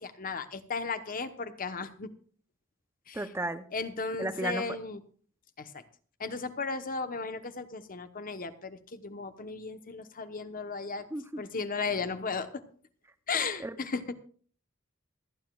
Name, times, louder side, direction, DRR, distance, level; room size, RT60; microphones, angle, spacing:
voice 1, 0.0-2.1 3.1-3.2 3.7-5.0 5.6-5.8 6.2-11.1 11.4-12.6 13.3-14.2, left 4 dB, 40° left, 10 dB, 1.0 m, -35 dB
voice 2, 3.1-3.6 4.2-4.6 11.1-11.4 13.6-13.7, right 2 dB, 10° right, 10 dB, 0.6 m, -33 dB
27.0 x 9.6 x 2.3 m, 0.44 s
head